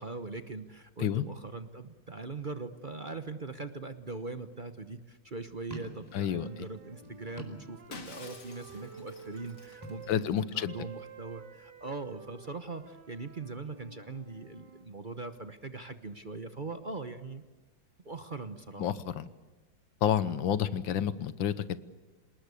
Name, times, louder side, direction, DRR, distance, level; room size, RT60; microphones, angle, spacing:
voice 1, 0.0-17.4 18.0-18.9, right 3 dB, 35° right, 9 dB, 0.9 m, -41 dB
sound 1, 5.7-8.2 8.5-9.1 9.7-10.9, equal, 10° right, 4.2 m, -48 dB
sound 2, 6.0-10.1 10.7-14.9, right 5 dB, 65° right, 2.5 m, -51 dB
voice 2, 6.1-6.5 10.1-10.7 18.8-19.3 20.0-21.8, left 9 dB, 90° left, 15 dB, 1.7 m, -29 dB
Shatter, 7.9-10.6, left 4 dB, 60° left, 2.9 m, -50 dB
26.5 x 19.5 x 8.4 m, 1.3 s
omnidirectional pair, 2.0 m